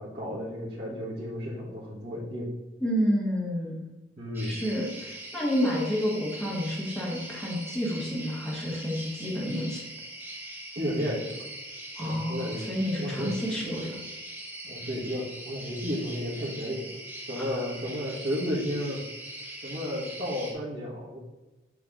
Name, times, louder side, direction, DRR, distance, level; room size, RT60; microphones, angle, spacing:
voice 1, 0.0-2.5 4.2-4.6 10.7-11.4 12.0-12.6 13.0-13.3 14.6-16.9 17.2-19.0 19.6-21.2, equal, 65° right, -10 dB, 1.6 m, -33 dB
voice 2, 2.8-3.8 4.4-9.8 12.0-14.0 17.4-17.5, equal, 5° left, -5 dB, 1.4 m, -29 dB
sound 1, 4.3-20.5, right 1 dB, 10° right, 1.0 m, -42 dB
8.0 x 3.4 x 3.8 m, 1.1 s
head